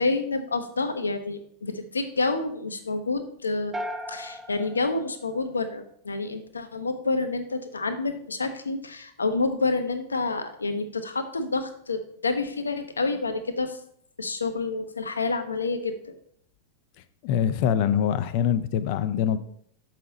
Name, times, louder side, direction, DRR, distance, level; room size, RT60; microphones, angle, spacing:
voice 1, 0.0-3.7 4.1-13.8 14.2-16.1, left 3 dB, 75° left, 9 dB, 0.7 m, -28 dB
sound 1, 3.7-6.0, equal, 20° right, 0.6 m, -37 dB
voice 2, 17.2-19.4, left 9 dB, 45° left, 12 dB, 0.5 m, -24 dB
6.5 x 5.8 x 3.9 m, 0.65 s
figure-of-eight pair, 90°, 0 cm